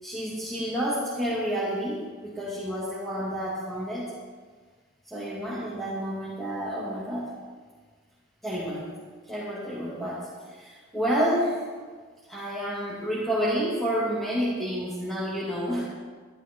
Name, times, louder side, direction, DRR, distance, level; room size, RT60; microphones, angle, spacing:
voice 1, 0.0-4.1 5.1-7.3 8.4-8.9 9.3-11.6 12.3-15.9, equal, ahead, -9 dB, 2.2 m, -29 dB
12.5 x 12.0 x 4.6 m, 1.5 s
head